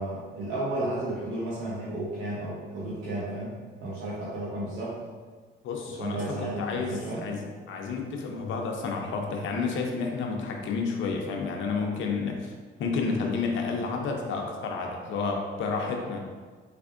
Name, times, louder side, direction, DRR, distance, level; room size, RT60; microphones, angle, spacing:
voice 1, 0.0-3.5 3.8-5.0 5.9-7.2, right 1 dB, 85° right, -8 dB, 0.8 m, -33 dB
voice 2, 5.6-6.2 6.6-12.5 12.8-16.2, left 4 dB, 75° left, 1 dB, 0.6 m, -30 dB
3.4 x 3.4 x 2.5 m, 1.5 s
cardioid pair, 90°, 20 cm